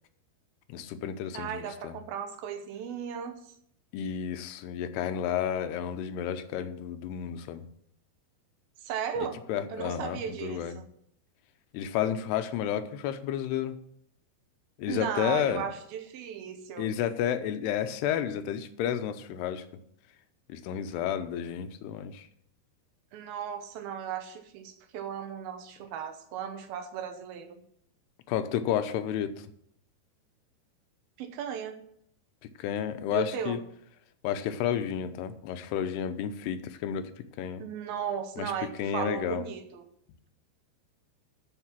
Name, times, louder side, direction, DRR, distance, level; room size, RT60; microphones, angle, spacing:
voice 1, 0.7-2.0 3.9-7.7 9.5-10.8 11.7-13.8 14.8-15.7 16.8-19.7 20.5-22.3 28.3-29.4 32.6-33.6 34.2-37.1 37.4-37.6 38.4-38.5 38.8-39.5, left 9 dB, 85° left, 10 dB, 2.9 m, -31 dB
voice 2, 1.3-3.5 8.8-9.4 9.7-10.9 14.9-16.9 23.1-27.6 31.2-31.8 33.1-33.6 37.6-39.8, right 8 dB, 75° right, 8 dB, 2.6 m, -36 dB
12.5 x 6.0 x 5.8 m, 0.70 s
omnidirectional pair, 4.6 m